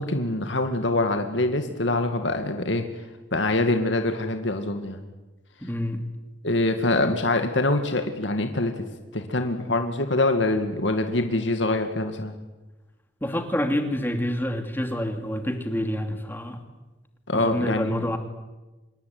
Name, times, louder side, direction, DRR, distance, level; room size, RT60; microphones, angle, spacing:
voice 1, 0.0-2.9 3.3-5.0 6.4-8.8 9.1-12.3 17.3-18.0, left 2 dB, 80° left, 6 dB, 2.2 m, -24 dB
voice 2, 5.6-6.0 13.2-16.6 17.3-18.2, equal, 10° left, 6 dB, 2.7 m, -27 dB
26.5 x 22.5 x 9.5 m, 1.1 s
head